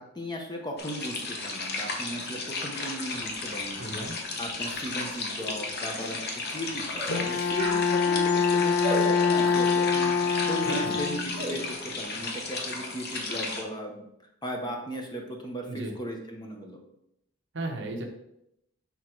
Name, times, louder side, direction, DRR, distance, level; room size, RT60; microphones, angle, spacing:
voice 1, 0.0-6.2 6.5-14.1 14.4-16.8, equal, 20° left, 2 dB, 0.7 m, -37 dB
sound 1, 0.8-13.6, left 3 dB, 45° left, 0.9 m, -34 dB
voice 2, 3.8-4.2 10.7-11.0 15.7-15.9 17.5-18.1, right 2 dB, 55° right, 3 dB, 0.9 m, -35 dB
sound 2, 5.4-5.6 5.9-6.2 6.9-7.2 7.5-7.9 8.8-9.1 9.4-9.7 11.4-11.6, right 1 dB, 20° right, 1.9 m, -34 dB
Bowed string instrument, 7.1-11.6, left 5 dB, 80° left, 0.5 m, -25 dB
6.1 x 3.5 x 4.5 m, 0.80 s
head